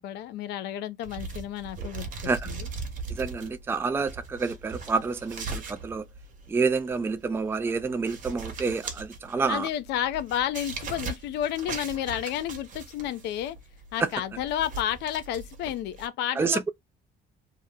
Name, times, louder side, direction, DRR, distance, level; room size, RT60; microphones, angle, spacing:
voice 1, 0.0-2.1 2.4-2.7 9.5-13.6 13.9-16.7, left 11 dB, 80° left, 0.5 m, -31 dB
sound 1, 1.0-16.1, right 4 dB, 50° right, 0.9 m, -40 dB
voice 2, 3.1-6.1 6.5-9.7 14.0-14.1 16.4-16.7, right 4 dB, 15° right, 0.3 m, -28 dB
2.8 x 2.1 x 3.6 m
cardioid pair, 110°, 17 cm